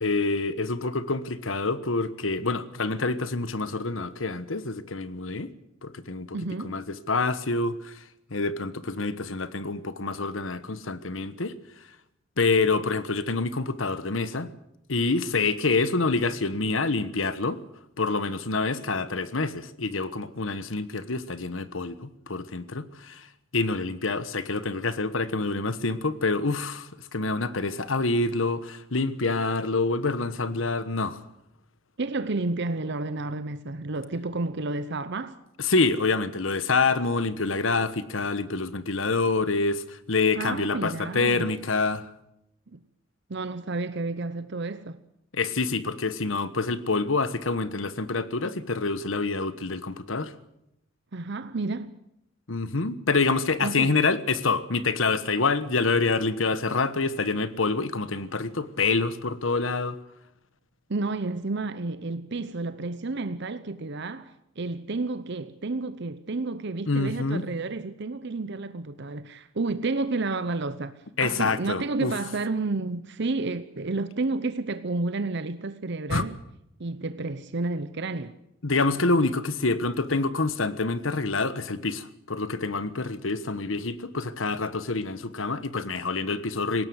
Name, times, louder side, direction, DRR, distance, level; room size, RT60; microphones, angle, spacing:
voice 1, 0.0-5.5 5.8-6.4 6.6-8.0 8.3-11.5 12.4-14.5 14.9-17.6 18.0-23.3 23.5-31.2 35.6-42.1 45.3-50.3 52.5-60.0 66.9-67.4 71.2-72.1 76.1-76.2 78.6-86.9, left 3 dB, 85° left, 1.3 m, -27 dB
voice 2, 6.3-6.8 32.0-35.4 40.3-41.4 42.7-42.8 43.3-45.0 51.1-51.9 53.6-53.9 60.9-70.9 71.2-76.4 76.8-78.3, right 3 dB, 60° right, 0.8 m, -31 dB
20.0 x 17.5 x 8.0 m
head